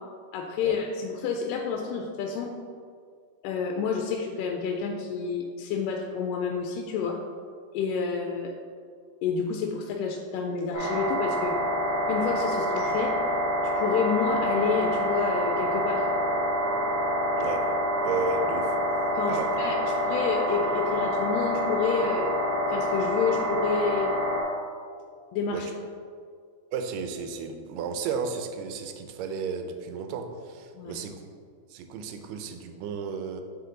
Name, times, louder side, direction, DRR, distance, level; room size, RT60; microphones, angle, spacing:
voice 1, 0.3-2.5 3.4-7.2 7.7-8.5 9.2-11.6 12.1-16.1 19.2-19.8 20.1-22.3 22.7-24.1 25.3-25.7 30.7-31.0, left 5 dB, 85° left, 2 dB, 2.2 m, -29 dB
sound 1, 10.7-24.4, equal, 50° left, 1.7 m, -27 dB
voice 2, 18.0-18.8 19.3-19.5 19.8-20.0 25.5-25.6 26.7-31.2 31.7-33.4, right 5 dB, 85° right, 6 dB, 2.2 m, -33 dB
9.2 x 3.6 x 3.8 m, 2.1 s
omnidirectional pair, 3.8 m